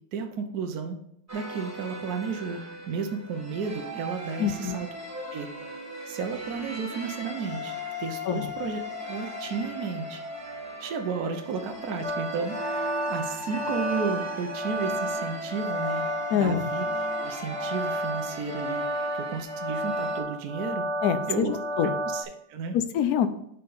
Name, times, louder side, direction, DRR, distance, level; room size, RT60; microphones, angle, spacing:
voice 1, 0.1-1.0 1.3-4.9 5.3-5.5 6.1-7.7 8.0-10.2 10.8-16.0 16.3-16.8 17.2-18.8 19.1-20.8 21.3-21.6 22.0-22.8, right 5 dB, 60° right, 5 dB, 1.2 m, -33 dB
sound 1, 1.3-20.2, left 1 dB, 10° right, 0.9 m, -38 dB
voice 2, 4.4-4.7 8.3-8.5 16.3-16.7 21.0-22.0 22.7-23.3, left 8 dB, 70° left, 11 dB, 1.0 m, -25 dB
sound 2, 12.0-22.2, right 1 dB, 40° right, 1.4 m, -31 dB
7.3 x 4.5 x 5.5 m, 0.73 s
omnidirectional pair, 2.0 m